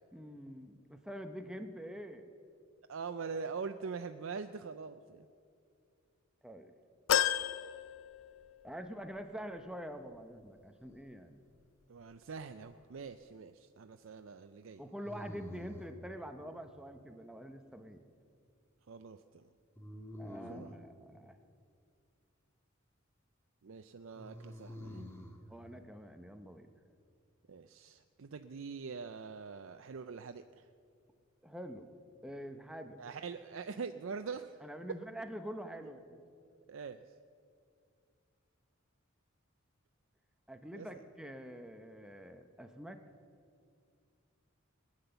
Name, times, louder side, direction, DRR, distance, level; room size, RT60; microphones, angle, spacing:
voice 1, 0.1-2.2 6.4-6.7 8.6-11.4 14.8-18.0 20.2-21.4 25.5-26.7 31.4-31.9 32.2-33.0 34.6-36.2 40.5-43.0, equal, 5° right, 7 dB, 0.7 m, -46 dB
voice 2, 2.9-5.3 11.9-14.8 18.9-19.5 20.5-20.7 23.6-25.0 27.5-30.7 33.0-34.6 36.7-37.0 40.7-41.0, right 5 dB, 70° right, 8 dB, 0.5 m, -44 dB
sound 1, 7.1-8.7 9.2-9.3 10.5-10.6, left 11 dB, 75° left, 0.5 m, -32 dB
sound 2, 12.3-13.0 15.0-16.0 19.8-20.8 24.1-25.4, left 1 dB, 10° left, 1.4 m, -48 dB
20.5 x 9.7 x 6.9 m, 2.3 s
head